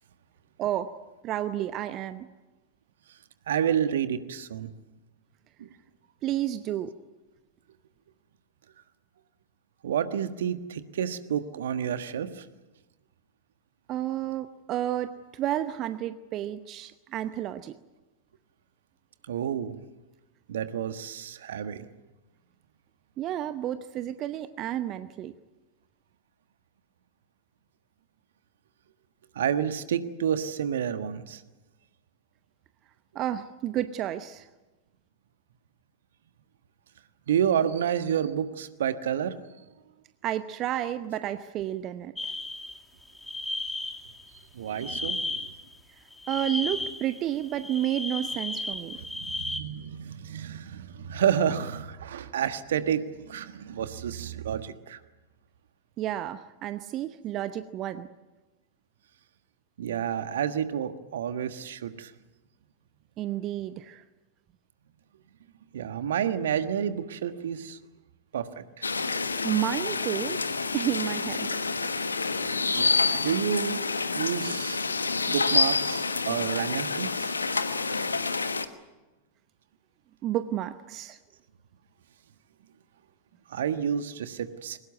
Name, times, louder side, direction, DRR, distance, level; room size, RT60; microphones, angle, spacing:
voice 1, 1.2-2.3 6.2-6.9 13.9-17.7 23.2-25.3 33.1-34.5 40.2-42.3 46.3-49.0 56.0-58.1 63.2-64.0 69.4-70.4 70.7-71.5 80.2-81.2, right 12 dB, 35° right, 12 dB, 0.9 m, -31 dB
voice 2, 3.5-4.7 5.6-5.7 9.8-12.5 19.3-19.7 20.5-21.9 29.3-31.4 37.3-39.3 44.5-45.5 49.2-55.0 59.8-62.1 65.7-67.8 68.3-68.9 72.7-73.8 74.1-74.8 75.3-77.3 83.5-84.8, right 9 dB, 60° right, 11 dB, 1.4 m, -30 dB
sound 1, 42.2-44.4 44.7-45.7 46.1-49.6, left 2 dB, 5° left, 2.3 m, -34 dB
sound 2, 68.8-78.6, left 4 dB, 75° left, 1.2 m, -28 dB
22.5 x 19.5 x 9.5 m, 1.1 s
figure-of-eight pair, 90°, 0 cm